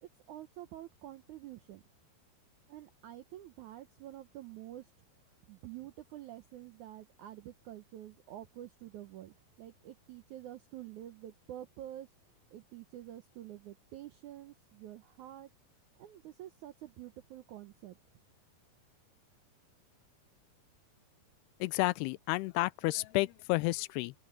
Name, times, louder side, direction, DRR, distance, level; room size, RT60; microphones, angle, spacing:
voice 1, 0.0-1.8 2.7-4.9 5.5-12.1 12.5-15.5 15.9-18.0, right 13 dB, 85° right, 1.7 m, -48 dB
voice 2, 21.6-24.1, left 20 dB, 85° left, 2.6 m, -31 dB
open air
omnidirectional pair, 4.6 m